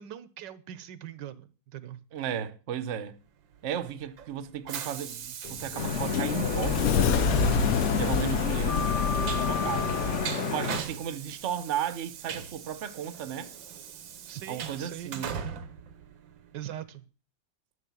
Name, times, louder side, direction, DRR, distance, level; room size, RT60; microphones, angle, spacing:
voice 1, 0.0-2.0 14.3-15.1 16.5-17.1, right 11 dB, 75° right, 1.4 m, -41 dB
voice 2, 2.1-3.2 3.6-8.8 9.1-10.0 10.4-13.5 14.5-15.3, right 9 dB, 55° right, 0.9 m, -35 dB
Train, 3.5-16.7, right 8 dB, 90° right, 1.8 m, -40 dB
Sliding door, 5.4-10.3, left 6 dB, 60° left, 1.0 m, -27 dB
sound 1, 5.8-10.8, left 5 dB, 45° left, 1.3 m, -31 dB
11.0 x 6.9 x 7.0 m
omnidirectional pair, 2.0 m